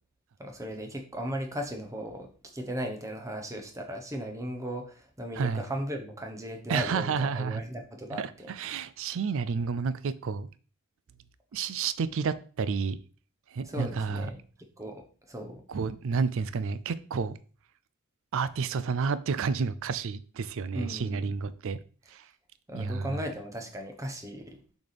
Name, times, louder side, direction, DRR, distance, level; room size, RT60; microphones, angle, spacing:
voice 1, 0.4-8.5 13.6-14.4 14.8-15.6 20.7-21.3 22.7-24.6, equal, 15° right, 4 dB, 1.0 m, -37 dB
voice 2, 6.7-7.6 8.1-10.5 11.5-13.0 13.5-14.3 15.7-17.4 18.3-21.8 22.1-22.3 22.7-23.2, right 5 dB, 65° right, 15 dB, 0.4 m, -30 dB
6.8 x 4.2 x 3.4 m, 0.39 s
head